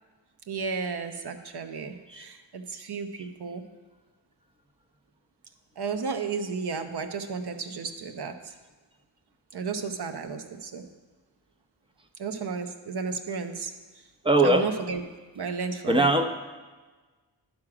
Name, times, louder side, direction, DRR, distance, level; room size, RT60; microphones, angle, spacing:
voice 1, 0.5-3.6 5.8-8.5 9.5-10.8 12.2-13.7 14.4-15.0 15.3-16.0, right 5 dB, 60° right, 8 dB, 0.9 m, -33 dB
voice 2, 14.2-14.7 15.9-16.3, right 2 dB, 10° right, 6 dB, 0.8 m, -21 dB
11.0 x 6.1 x 4.9 m, 1.3 s
cardioid pair, 80°, 44 cm